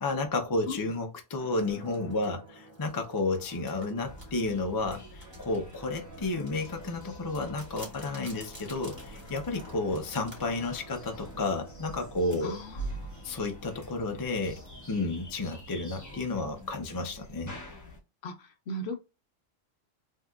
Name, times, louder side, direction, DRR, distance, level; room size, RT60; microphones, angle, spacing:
voice 1, 0.0-12.6 13.2-17.5, left 2 dB, 30° left, 0.4 m, -32 dB
sound 1, 1.3-11.2 12.3-12.5 13.8-17.6, equal, 15° right, 1.5 m, -53 dB
sound 2, 1.4-15.3, right 1 dB, 50° right, 1.8 m, -54 dB
sound 3, 4.0-18.0, right 1 dB, 15° left, 0.8 m, -45 dB
voice 2, 12.4-12.9 18.2-18.9, left 1 dB, 65° left, 0.8 m, -36 dB
3.5 x 2.8 x 2.3 m
omnidirectional pair, 1.3 m